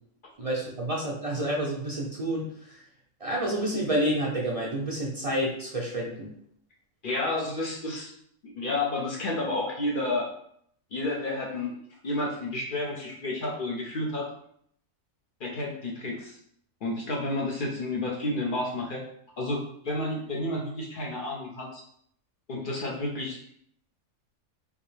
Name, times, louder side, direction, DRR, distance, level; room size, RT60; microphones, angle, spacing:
voice 1, 0.4-2.8 3.2-6.3, right 1 dB, 70° right, -3 dB, 0.3 m, -29 dB
voice 2, 7.0-8.1 8.4-10.3 10.9-11.7 12.0-14.3 15.4-16.4 16.8-19.0 19.4-21.8 22.5-23.4, left 2 dB, 50° left, -1 dB, 0.7 m, -31 dB
5.1 x 2.0 x 3.2 m, 0.67 s
omnidirectional pair, 1.5 m